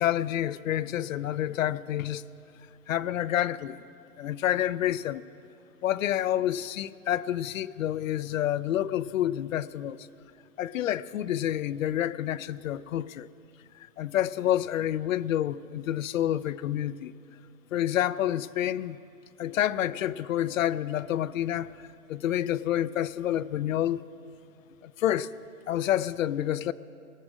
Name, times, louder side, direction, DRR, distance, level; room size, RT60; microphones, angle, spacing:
voice 1, 0.0-2.2 2.9-3.8 4.2-5.2 5.8-10.1 10.6-13.3 14.0-17.1 17.7-19.0 19.4-21.7 22.1-24.0 24.8-25.3 25.7-26.7, left 12 dB, 65° left, 0.6 m, -28 dB
19.5 x 13.0 x 4.9 m
hypercardioid pair, 135°, 43 cm